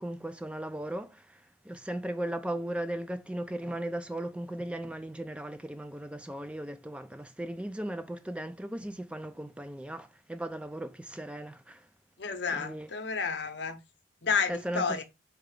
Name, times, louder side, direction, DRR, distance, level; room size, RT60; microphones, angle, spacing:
voice 1, 0.0-1.4 1.6-11.8 12.5-12.9 14.5-15.0, right 1 dB, 5° right, 0.3 m, -37 dB
voice 2, 12.2-13.8 14.2-15.0, left 5 dB, 60° left, 0.7 m, -31 dB
4.7 x 2.3 x 4.7 m
head